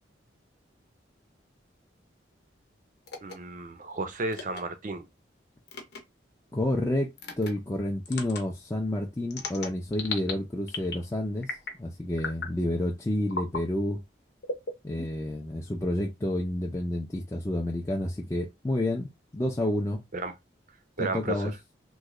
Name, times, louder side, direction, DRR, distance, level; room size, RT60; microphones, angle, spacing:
sound 1, 3.1-3.3 4.3-4.6 5.7-6.0 7.2-7.5 8.1-8.4 9.3-10.3 10.7-11.1 11.4-11.8 12.2-12.5 13.3-13.6 14.4-15.3, left 4 dB, 60° left, 0.8 m, -36 dB
voice 1, 3.2-5.1 20.1-20.3 21.0-21.5, right 2 dB, 40° right, 0.5 m, -33 dB
voice 2, 6.5-7.1 7.4-11.5 11.8-14.0 14.8-20.0 21.0-21.5, left 1 dB, 15° left, 0.4 m, -29 dB
3.0 x 2.2 x 3.6 m
head